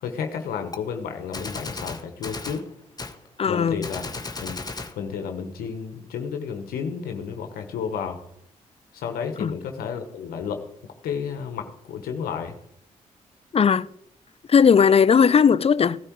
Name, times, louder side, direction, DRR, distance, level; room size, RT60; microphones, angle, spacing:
voice 1, 0.0-2.6 3.5-4.6 5.0-8.2 8.9-10.6 11.0-12.5, left 7 dB, 80° left, 1.3 m, -32 dB
Gunshot gunfire, 0.7-0.8 1.3-2.6 3.0-3.2 3.8-5.0, left 3 dB, 25° left, 1.3 m, -34 dB
voice 2, 3.4-3.9 9.4-9.6 13.5-13.8 14.5-16.0, left 6 dB, 40° left, 0.6 m, -17 dB
17.0 x 9.9 x 4.7 m
supercardioid pair, 50°, 15 cm